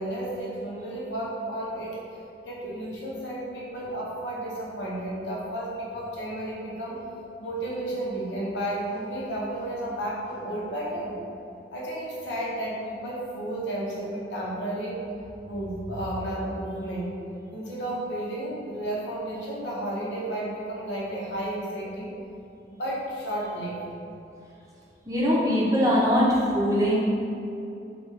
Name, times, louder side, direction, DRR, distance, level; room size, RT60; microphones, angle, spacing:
voice 1, 0.0-2.0 2.5-7.0 7.4-11.2 11.7-15.0 15.4-17.1 17.5-22.1 22.8-23.8, right 1 dB, 80° left, -4 dB, 0.8 m, -32 dB
voice 2, 25.1-27.0, equal, 20° right, -6 dB, 0.7 m, -22 dB
4.9 x 2.3 x 3.2 m, 2.7 s
head